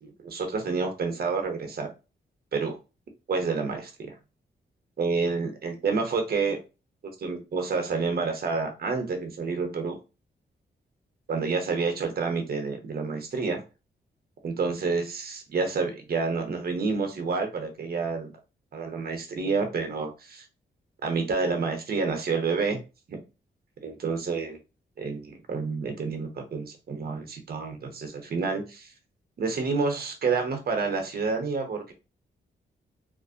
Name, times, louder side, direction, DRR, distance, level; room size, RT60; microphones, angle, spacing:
voice 1, 0.0-1.9 2.5-2.7 3.3-3.9 5.0-6.6 7.2-10.0 11.3-13.6 14.4-18.3 18.7-20.4 21.0-22.8 23.1-23.2 23.8-24.6 25.0-28.9 29.4-31.9, right 4 dB, 55° right, 4 dB, 0.7 m, -29 dB
2.4 x 2.0 x 2.6 m, 0.30 s
cardioid pair, 80°, 19 cm